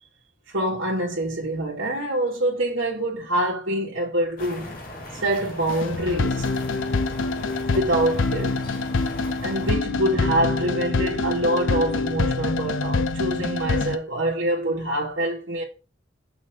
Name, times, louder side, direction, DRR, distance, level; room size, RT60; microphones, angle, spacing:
voice 1, 0.5-4.7 5.2-6.5 7.7-8.6 9.4-15.6, right 1 dB, 75° right, 2.0 m, -25 dB
sound 1, 4.4-9.7, left 1 dB, 45° left, 2.0 m, -38 dB
sound 2, 5.7-14.0, left 3 dB, 85° left, 0.7 m, -25 dB
6.3 x 4.2 x 6.4 m
head